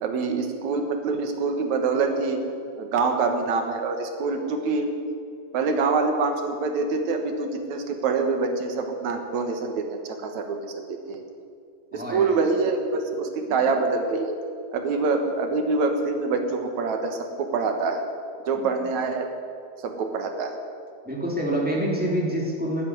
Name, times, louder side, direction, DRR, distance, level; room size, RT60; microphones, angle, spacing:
voice 1, 0.0-2.4 2.8-4.9 5.5-11.2 11.9-14.4 14.7-18.0 18.5-19.3 19.8-20.6, right 4 dB, 75° right, 5 dB, 2.8 m, -25 dB
voice 2, 11.9-12.4 13.4-13.6 15.1-15.2 18.5-18.8 21.0-22.9, right 1 dB, 5° right, -3 dB, 2.9 m, -27 dB
12.0 x 11.0 x 9.5 m, 2.4 s
omnidirectional pair, 3.3 m